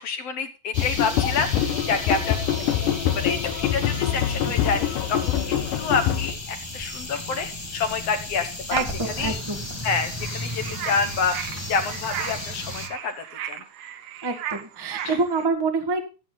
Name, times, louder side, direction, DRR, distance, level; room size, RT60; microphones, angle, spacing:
voice 1, 0.0-2.6 2.9-8.8 9.2-9.4 9.8-11.4 11.7-13.1 13.5-13.6 15.0-15.2, left 5 dB, 60° left, 7 dB, 1.9 m, -28 dB
sound 1, 0.7-6.3, left 10 dB, 85° left, 2.7 m, -25 dB
sound 2, 0.7-12.9, left 1 dB, 20° left, 0.7 m, -34 dB
voice 2, 8.7-9.6 14.2-16.0, right 3 dB, 15° right, 5 dB, 0.8 m, -26 dB
sound 3, 10.2-15.5, right 10 dB, 75° right, 2.4 m, -36 dB
15.5 x 8.4 x 3.9 m, 0.32 s
omnidirectional pair, 3.6 m